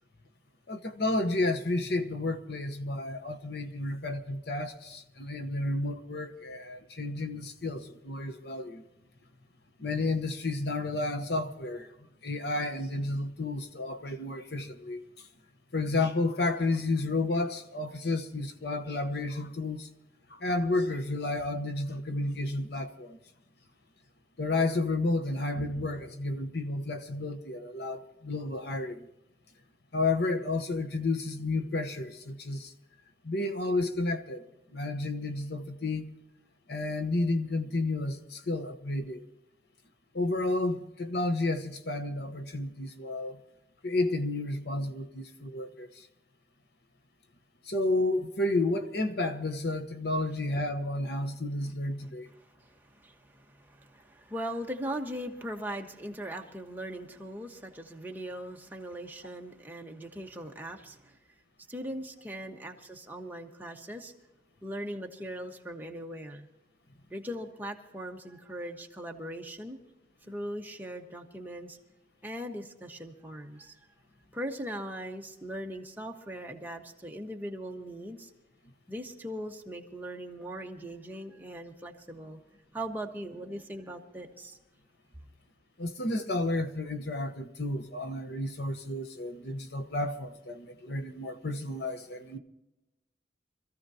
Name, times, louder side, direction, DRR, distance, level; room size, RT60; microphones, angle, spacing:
voice 1, 0.7-8.8 9.8-11.9 12.2-15.3 15.7-19.9 20.3-23.2 24.4-29.1 29.9-32.7 33.2-34.4 34.7-36.1 36.7-39.3 40.1-43.4 43.8-46.1 47.7-52.3 85.8-92.4, left 2 dB, 65° left, 1.0 m, -31 dB
voice 2, 52.6-61.2 61.7-64.1 64.6-66.5 67.1-69.8 70.3-71.8 72.2-73.8 74.3-78.3 78.9-82.4 82.7-84.6, equal, 10° right, 1.2 m, -40 dB
25.5 x 14.5 x 2.8 m
head